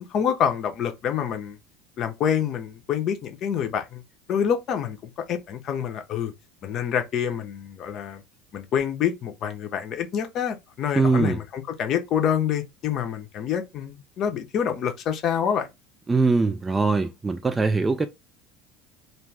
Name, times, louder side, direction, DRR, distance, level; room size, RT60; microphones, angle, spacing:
voice 1, 0.0-1.6 2.0-4.0 4.3-6.3 6.6-8.2 8.5-15.7, left 8 dB, 45° left, 0.6 m, -27 dB
voice 2, 10.9-11.4 16.1-18.1, right 3 dB, 15° right, 0.3 m, -22 dB
2.5 x 2.3 x 3.2 m
figure-of-eight pair, 70°, 0 cm